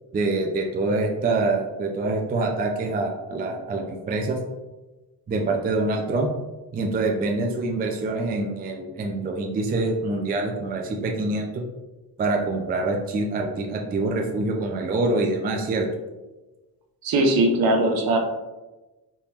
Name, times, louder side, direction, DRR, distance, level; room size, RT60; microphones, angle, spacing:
voice 1, 0.1-4.4 5.3-6.3 6.7-11.6 12.2-15.9, right 2 dB, 25° right, 1 dB, 0.3 m, -25 dB
voice 2, 17.0-18.2, right 2 dB, 55° right, 2 dB, 0.7 m, -20 dB
3.4 x 2.9 x 2.8 m, 1.1 s
cardioid pair, 110°, 43 cm